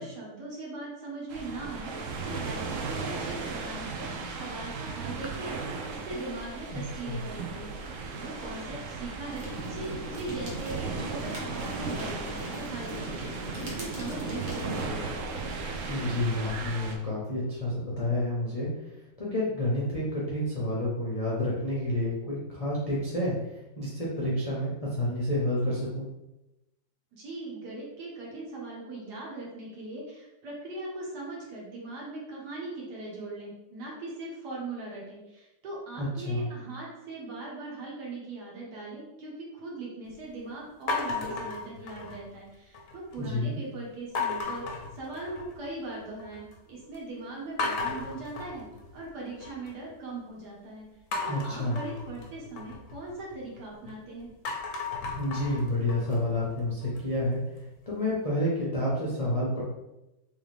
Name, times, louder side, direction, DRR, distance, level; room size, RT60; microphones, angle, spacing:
voice 1, 0.0-1.9 2.2-7.7 8.1-15.1 27.1-48.7 48.9-50.9 51.2-54.3, right 2 dB, 60° right, -4 dB, 1.7 m, -40 dB
sound 1, 1.3-17.0, right 4 dB, 85° right, 0.7 m, -37 dB
voice 2, 6.7-7.2 15.9-18.7 19.2-26.1 36.0-36.5 43.2-43.6 51.2-51.8 55.2-57.4 57.9-59.6, left 1 dB, 40° left, -7 dB, 0.5 m, -29 dB
sound 2, 9.3-14.9, right 1 dB, 35° right, 0.8 m, -38 dB
sound 3, 40.9-42.4 42.7-43.3 44.2-45.7 46.0-46.6 46.9-47.0 47.6-49.7 51.1-53.9 54.3-57.2, left 4 dB, 65° left, 0.8 m, -35 dB
3.5 x 3.3 x 3.3 m, 0.95 s
omnidirectional pair, 2.0 m